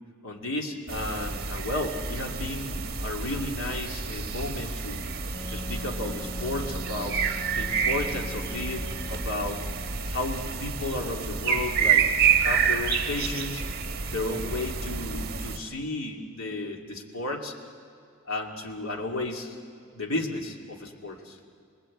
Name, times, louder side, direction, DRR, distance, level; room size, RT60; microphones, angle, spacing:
voice 1, 0.2-5.0 5.5-7.2 7.5-9.6 10.1-12.1 12.4-13.6 14.0-17.5 18.3-19.6 19.9-21.4, left 2 dB, 90° left, 1 dB, 2.7 m, -33 dB
sound 1, 0.9-15.6, right 6 dB, 50° right, 1.6 m, -29 dB
Wind instrument woodwind instrument, 5.3-10.0, left 2 dB, 10° left, 1.0 m, -42 dB
29.0 x 20.0 x 8.7 m, 2.3 s
head